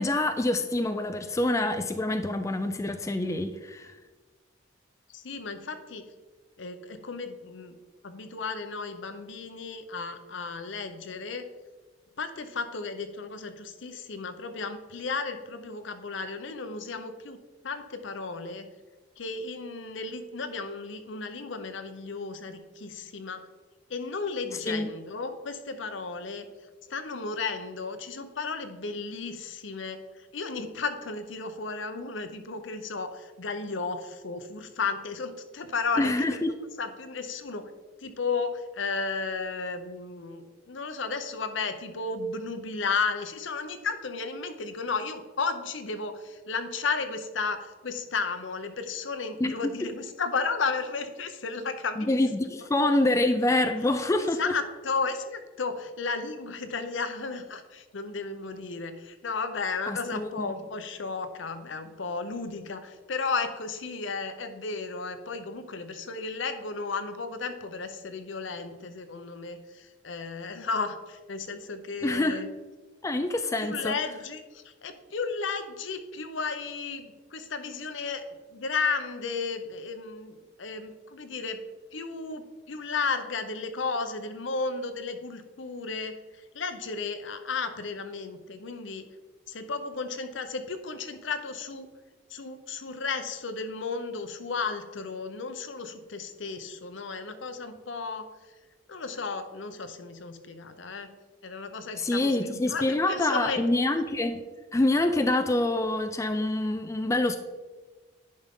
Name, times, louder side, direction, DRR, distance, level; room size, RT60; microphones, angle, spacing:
voice 1, 0.0-3.9 24.7-24.9 36.0-36.5 49.4-49.9 52.0-54.5 59.9-60.5 72.0-72.4 73.0-74.0 102.0-104.4 104.7-107.4, left 2 dB, 15° left, 8 dB, 0.3 m, -26 dB
voice 2, 5.1-6.0 6.6-7.7 8.0-11.5 12.2-17.4 17.6-18.7 19.2-23.4 23.9-26.5 26.9-37.7 38.0-52.2 54.2-72.5 73.6-78.2 78.5-81.6 81.9-86.1 86.5-89.0 89.5-91.9 92.3-98.3 98.9-101.1 101.4-103.6, left 4 dB, 70° left, 9 dB, 0.8 m, -34 dB
10.5 x 5.3 x 3.7 m, 1.3 s
head